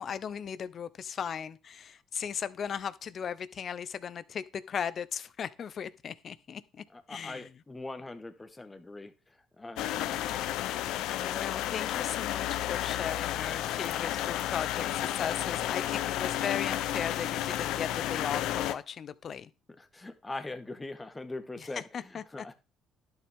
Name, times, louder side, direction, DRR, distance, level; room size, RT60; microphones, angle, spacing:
voice 1, 0.0-7.5 9.9-10.3 11.1-19.5 21.6-22.5, left 7 dB, 50° left, 0.8 m, -37 dB
voice 2, 6.9-9.1 9.6-10.0 19.8-21.8 22.1-22.5, left 2 dB, 15° left, 1.6 m, -41 dB
sound 1, 9.8-18.7, left 13 dB, 75° left, 0.8 m, -32 dB
11.5 x 7.1 x 3.7 m
supercardioid pair, 90°, 0 cm